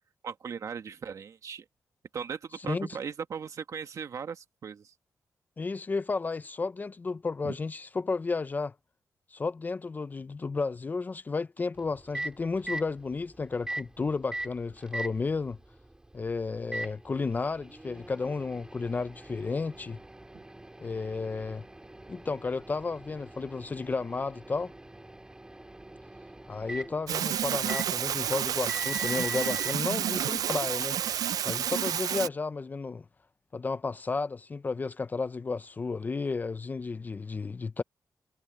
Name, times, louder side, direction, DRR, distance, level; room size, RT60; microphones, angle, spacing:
voice 1, 0.2-1.6 2.1-4.9 7.4-7.5, right 6 dB, 60° right, 1.7 m, -38 dB
voice 2, 2.6-3.0 5.6-8.7 9.3-15.6 16.1-20.0 20.8-21.6 22.1-24.7 26.5-31.0 31.4-33.0 33.5-37.8, left 4 dB, 30° left, 0.4 m, -32 dB
Microwave oven, 11.7-29.7, right 2 dB, 10° right, 2.2 m, -42 dB
sound 1, 27.1-32.3, right 10 dB, 85° right, 0.4 m, -30 dB
wide cardioid pair, 130°, 6 cm